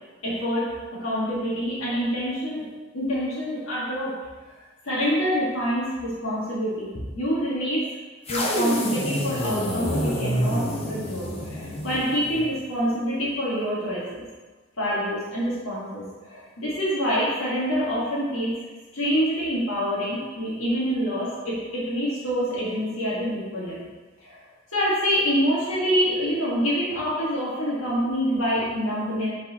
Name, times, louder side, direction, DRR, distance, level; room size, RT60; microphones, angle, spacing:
voice 1, 0.2-0.7 1.0-2.6 2.9-4.1 4.8-6.9 7.1-7.8 8.3-14.2 14.8-18.5 18.9-23.9 24.2-24.4 24.7-29.3, equal, 75° left, -8 dB, 1.8 m, -26 dB
sound 1, 8.3-12.5, equal, 30° left, 0.9 m, -27 dB
8.2 x 4.2 x 2.9 m, 1.3 s
head